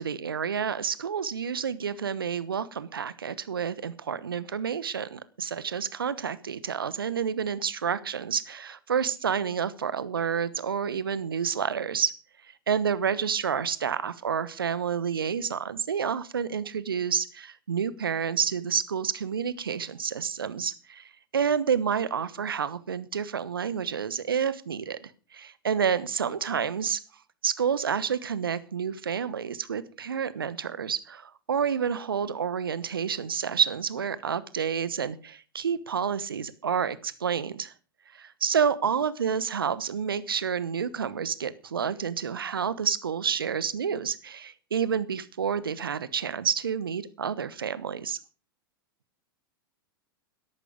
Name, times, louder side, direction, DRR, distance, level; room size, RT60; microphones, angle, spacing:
voice 1, 0.0-12.2 12.7-27.0 27.4-37.7 38.1-48.2, right 7 dB, 75° right, 17 dB, 1.1 m, -29 dB
13.5 x 11.5 x 5.0 m, 0.36 s
figure-of-eight pair, 90°, 12 cm